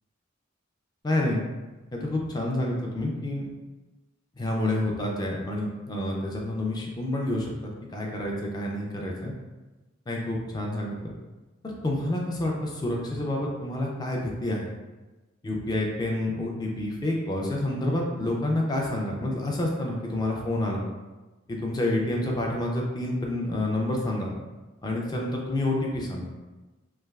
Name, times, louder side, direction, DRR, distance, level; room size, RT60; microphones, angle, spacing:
voice 1, 1.0-1.4 1.9-3.5 4.4-9.3 10.1-11.1 11.6-14.7 15.4-20.8 21.5-24.3 24.8-26.3, left 1 dB, 20° left, -1 dB, 0.4 m, -28 dB
3.3 x 2.3 x 2.2 m, 1.2 s
head